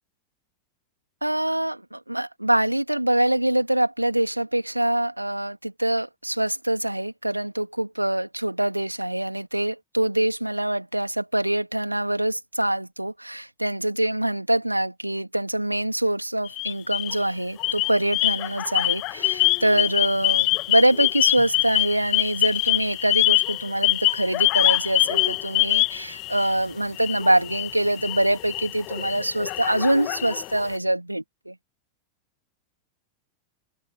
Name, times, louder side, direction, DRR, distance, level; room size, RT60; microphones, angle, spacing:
voice 1, 1.2-31.5, right 1 dB, 85° right, 2.8 m, -24 dB
sound 1, 16.5-17.2 17.6-26.6 27.0-30.7, left 23 dB, 40° left, 3.1 m, -24 dB
open air
figure-of-eight pair, 90°, 0 cm